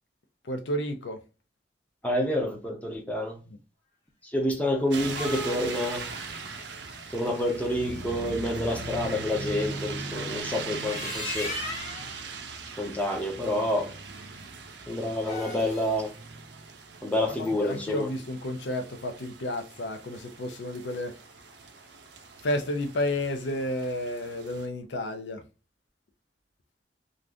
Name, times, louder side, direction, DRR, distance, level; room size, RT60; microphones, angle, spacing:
voice 1, 0.4-1.2 3.4-3.6 17.3-21.2 22.4-25.4, left 1 dB, 90° left, 0.6 m, -31 dB
voice 2, 2.0-3.4 4.3-6.0 7.1-11.5 12.8-13.9 14.9-16.1 17.0-18.1, left 1 dB, 10° left, 0.7 m, -28 dB
sound 1, 4.9-7.9 10.6-12.1 15.1-16.0, left 2 dB, 45° left, 1.2 m, -38 dB
sound 2, 4.9-24.7, right 4 dB, 75° right, 0.6 m, -40 dB
2.6 x 2.4 x 3.4 m
head